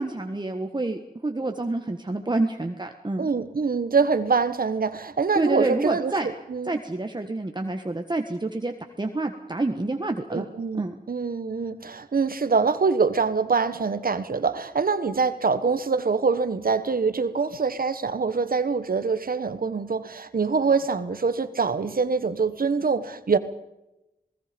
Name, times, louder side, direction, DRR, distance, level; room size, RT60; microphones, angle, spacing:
voice 1, 0.0-3.3 5.3-6.3 6.6-10.4 10.8-11.0, right 2 dB, 30° right, 4 dB, 1.6 m, -28 dB
voice 2, 3.2-6.8 10.3-23.4, right 5 dB, 65° right, 12 dB, 1.4 m, -24 dB
28.0 x 19.5 x 5.3 m, 0.95 s
wide cardioid pair, 75°, 16 cm